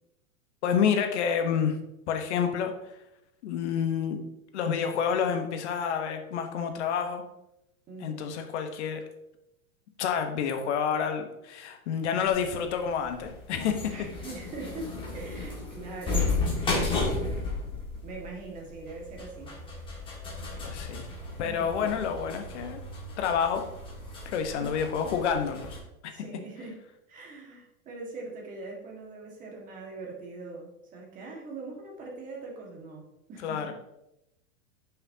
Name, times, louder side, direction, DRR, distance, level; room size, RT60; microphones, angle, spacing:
voice 1, 0.6-1.8 2.1-2.7 3.4-4.2 4.5-7.2 8.0-9.1 10.0-14.1 20.6-21.1 21.4-22.8 23.2-23.6 24.2-25.8 26.0-26.1 33.4-33.7, left 7 dB, 50° left, 6 dB, 1.1 m, -29 dB
voice 2, 7.9-8.5 13.9-16.5 16.8-17.5 18.0-19.5 21.4-21.9 24.6-24.7 25.0-25.2 26.1-26.8 27.1-33.7, right 3 dB, 20° right, -2 dB, 1.7 m, -42 dB
sound 1, 12.3-25.8, left 3 dB, 10° left, 1.6 m, -34 dB
10.5 x 5.9 x 2.8 m, 0.87 s
supercardioid pair, 160°, 42 cm